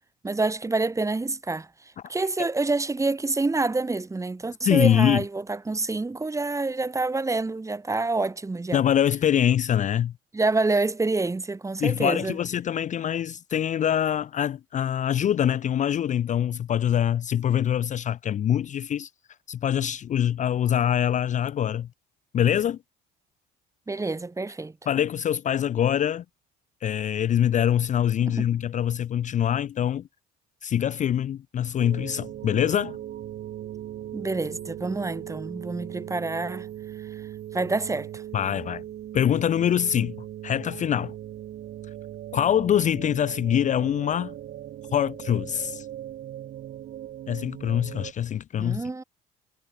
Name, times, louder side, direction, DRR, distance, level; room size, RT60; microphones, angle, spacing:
voice 1, 0.2-1.7 2.1-8.8 10.3-12.4 23.9-24.7 28.3-28.5 34.1-36.7 37.5-38.2 48.6-49.0, right 3 dB, 15° right, 1.3 m, -27 dB
voice 2, 4.6-5.2 8.7-10.1 11.8-19.1 19.5-21.9 22.3-22.8 24.9-26.2 26.8-30.0 30.6-33.0 38.3-38.8 39.1-40.2 40.4-41.1 42.3-44.3 44.9-45.9 47.3-48.8, left 10 dB, 40° left, 0.5 m, -24 dB
sound 1, 31.8-48.1, right 12 dB, 55° right, 1.6 m, -39 dB
supercardioid pair, 75°, 19 cm